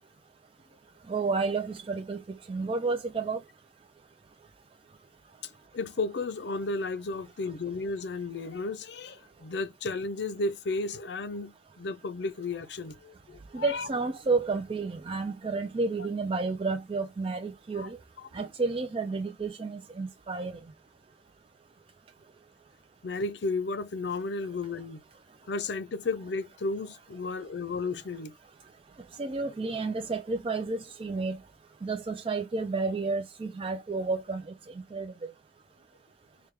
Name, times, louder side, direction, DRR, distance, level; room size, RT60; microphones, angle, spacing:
voice 1, 1.1-2.2 2.5-3.4 13.5-18.0 18.3-20.6 29.2-31.4 31.8-34.4 34.9-35.3, right 3 dB, 30° right, 0.4 m, -31 dB
voice 2, 5.4-13.9 17.7-17.9 18.2-18.5 23.0-25.0 25.5-28.3, left 3 dB, 70° left, 0.5 m, -33 dB
4.8 x 2.2 x 3.3 m
head